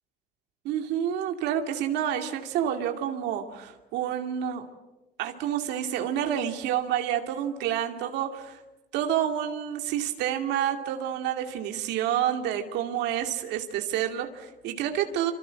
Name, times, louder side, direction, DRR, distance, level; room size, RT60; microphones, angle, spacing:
voice 1, 0.6-4.7 5.2-8.6 8.9-15.3, right 10 dB, 90° right, 6 dB, 2.5 m, -29 dB
26.0 x 25.5 x 7.7 m, 1.0 s
cardioid pair, 110°, 17 cm